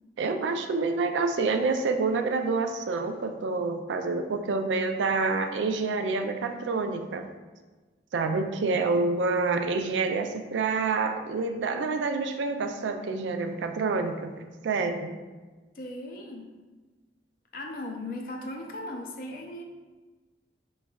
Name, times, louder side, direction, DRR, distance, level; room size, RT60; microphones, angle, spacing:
voice 1, 0.2-7.2 8.1-15.1, right 3 dB, 85° right, 6 dB, 0.4 m, -27 dB
voice 2, 15.7-16.5 17.5-19.6, left 1 dB, 50° left, 1 dB, 0.5 m, -37 dB
4.6 x 3.1 x 2.3 m, 1.3 s
head